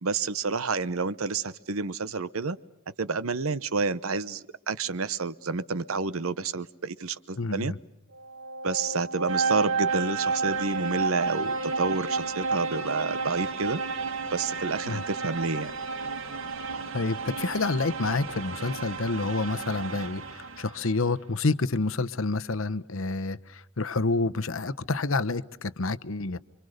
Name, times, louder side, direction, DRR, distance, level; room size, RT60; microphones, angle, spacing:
voice 1, 0.0-2.6 3.0-7.7 8.6-13.8 14.3-15.7, right 4 dB, 85° right, 1.0 m, -29 dB
voice 2, 7.4-7.8 14.9-15.0 16.9-26.4, left 3 dB, 70° left, 1.0 m, -28 dB
sound 1, 8.1-20.9, right 4 dB, 65° right, 1.8 m, -31 dB
28.5 x 24.5 x 6.6 m
head